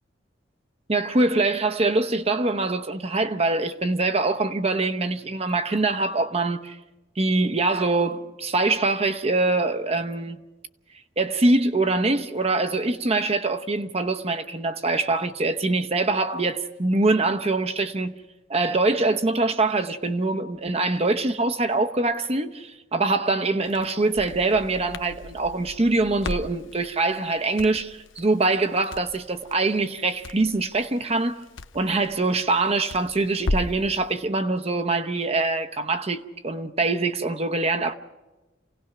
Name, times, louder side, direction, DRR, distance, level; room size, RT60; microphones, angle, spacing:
voice 1, 0.9-6.8 7.2-10.4 11.2-18.2 18.5-31.4 31.7-37.9, right 3 dB, 35° right, 0.9 m, -24 dB
Crackle, 23.7-33.9, left 2 dB, 85° left, 0.8 m, -36 dB
28.0 x 17.5 x 5.9 m
head